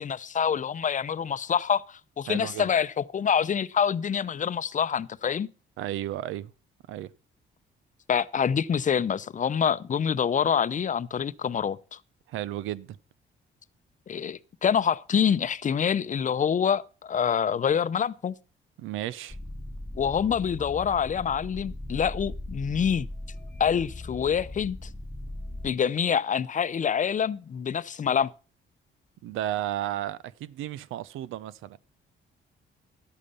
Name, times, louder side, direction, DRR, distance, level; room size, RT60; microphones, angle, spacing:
voice 1, 0.0-5.5 8.1-12.0 14.1-18.3 20.0-23.1 23.6-24.8 25.6-28.3, left 7 dB, 40° left, 0.6 m, -26 dB
voice 2, 2.3-2.7 5.8-6.5 6.9-7.1 12.3-13.0 18.8-19.4 29.2-31.8, right 12 dB, 90° right, 0.6 m, -33 dB
sound 1, 19.3-25.7, left 2 dB, 10° left, 1.1 m, -39 dB
12.0 x 8.5 x 5.5 m
cardioid pair, 90°, 20 cm